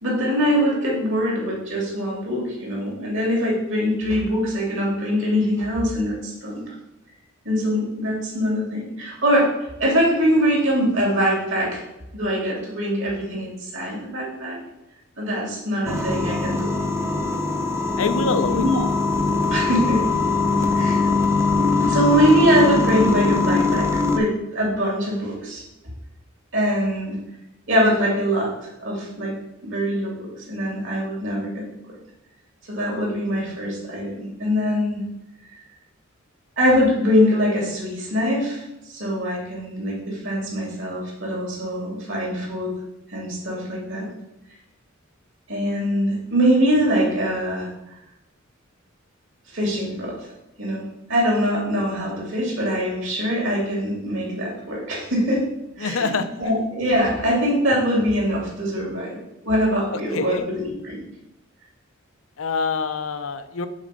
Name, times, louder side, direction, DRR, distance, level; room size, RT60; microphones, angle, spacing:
voice 1, 0.0-6.7 7.4-9.5 9.8-11.8 12.1-14.6 15.2-16.7 18.5-18.9 19.5-20.0 20.7-21.1 21.8-25.6 26.5-27.2 27.7-29.3 29.6-31.6 32.7-35.0 36.6-42.7 43.1-44.1 45.5-47.7 49.5-50.1 50.6-55.4 55.8-61.0, equal, 65° right, -2 dB, 2.7 m, -23 dB
sound 1, 15.8-24.2, left 3 dB, 15° right, 0.6 m, -21 dB
voice 2, 18.0-18.6 55.8-56.3 60.1-60.5 62.4-63.7, left 4 dB, 80° left, 10 dB, 0.6 m, -25 dB
6.5 x 4.2 x 5.2 m, 0.91 s
head